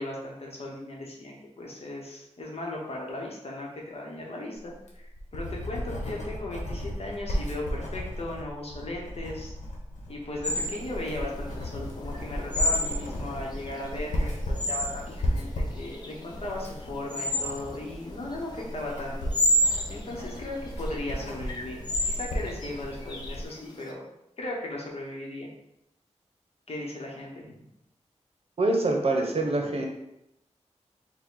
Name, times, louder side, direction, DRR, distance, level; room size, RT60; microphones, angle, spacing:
voice 1, 0.0-9.5 10.1-24.0 24.4-25.5 26.7-27.7 29.6-29.7, left 1 dB, 55° left, -1 dB, 1.0 m, -37 dB
Writing, 4.7-23.5, equal, 85° left, 1.0 m, -35 dB
sound 1, 10.4-23.9, equal, 35° left, 0.6 m, -31 dB
voice 2, 28.6-29.9, right 2 dB, 55° right, 1 dB, 0.7 m, -25 dB
4.6 x 2.2 x 3.8 m, 0.84 s
wide cardioid pair, 120°, 12 cm